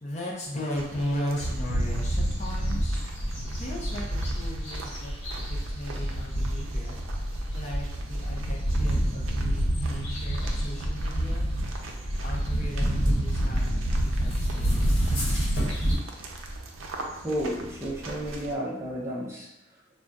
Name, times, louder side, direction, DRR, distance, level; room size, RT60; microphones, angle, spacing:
voice 1, 0.0-3.3 3.6-5.2 5.5-7.0 7.3-11.8 12.2-15.1, left 1 dB, 35° left, -3 dB, 0.5 m, -37 dB
sound 1, 0.7-18.6, right 2 dB, 80° right, 0.4 m, -41 dB
sound 2, 1.4-16.0, equal, 65° left, 1.1 m, -28 dB
voice 2, 17.2-19.5, equal, 15° right, -6 dB, 0.6 m, -32 dB
2.3 x 2.2 x 3.8 m, 0.89 s
head